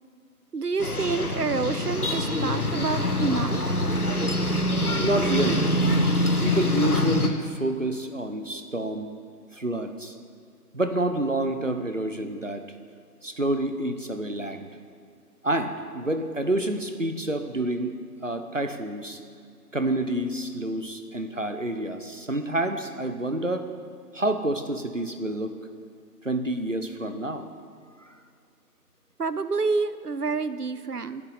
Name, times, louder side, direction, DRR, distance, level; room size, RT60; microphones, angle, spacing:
voice 1, 0.5-3.6 29.2-31.2, right 4 dB, 70° right, 13 dB, 0.7 m, -28 dB
sound 1, 0.8-7.3, left 1 dB, 65° left, 1.3 m, -25 dB
voice 2, 4.9-5.7 6.4-9.1 9.5-10.2 10.7-12.7 13.2-14.7 15.4-17.9 18.2-19.2 19.7-23.7 24.1-25.6 26.2-27.4 28.0-28.1, right 1 dB, 50° right, 8 dB, 1.0 m, -28 dB
17.0 x 10.5 x 4.1 m, 2.3 s
figure-of-eight pair, 175°, 48 cm